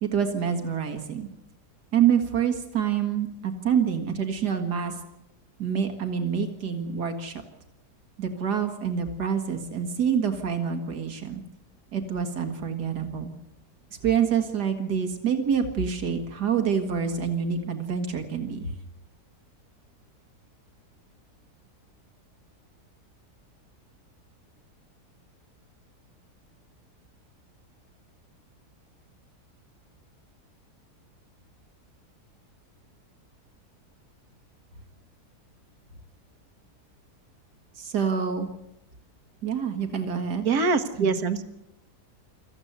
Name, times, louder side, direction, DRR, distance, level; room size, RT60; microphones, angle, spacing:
voice 1, 0.0-1.3 1.9-4.9 5.6-7.4 8.2-11.4 11.9-13.3 14.0-18.7 37.8-38.5 39.4-40.5 41.0-41.1, right 7 dB, 85° right, 5 dB, 2.4 m, -26 dB
voice 2, 40.4-41.5, right 4 dB, 70° right, 10 dB, 1.8 m, -24 dB
25.5 x 14.5 x 8.1 m, 0.88 s
omnidirectional pair, 1.7 m